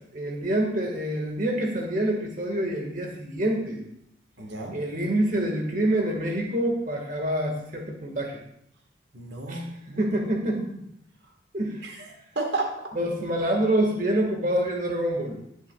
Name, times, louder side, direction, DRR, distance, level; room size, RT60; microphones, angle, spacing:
voice 1, 0.1-3.9 4.7-8.4 9.5-9.6 10.0-10.6 11.5-11.9 12.9-15.4, right 1 dB, 45° right, 1 dB, 1.7 m, -26 dB
voice 2, 4.4-4.8 9.1-10.2 10.4-10.8 11.8-12.8, right 2 dB, 65° right, 1 dB, 1.5 m, -33 dB
19.5 x 7.3 x 2.3 m, 0.74 s
head